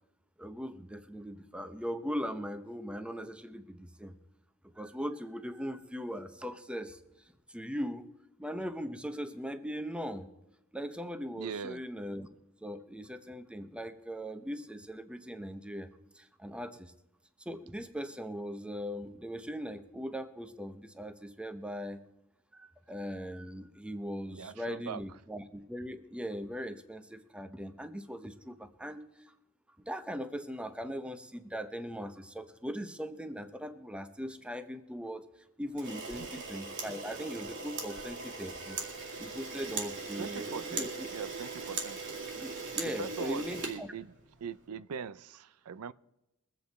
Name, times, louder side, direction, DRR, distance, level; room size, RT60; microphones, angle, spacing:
voice 1, 0.4-4.1 4.8-7.0 7.5-8.1 8.4-10.3 10.7-12.3 12.6-15.9 16.1-16.9 17.4-22.0 22.5-29.3 29.9-35.2 35.6-38.9 39.2-41.1 42.4-43.9, equal, 5° right, 0.8 m, -40 dB
voice 2, 11.4-11.8 24.3-25.0 40.2-42.0 43.0-44.1 44.4-45.9, right 7 dB, 90° right, 0.4 m, -41 dB
Camera, 35.7-44.5, right 4 dB, 60° right, 2.1 m, -39 dB
22.5 x 8.0 x 4.1 m
head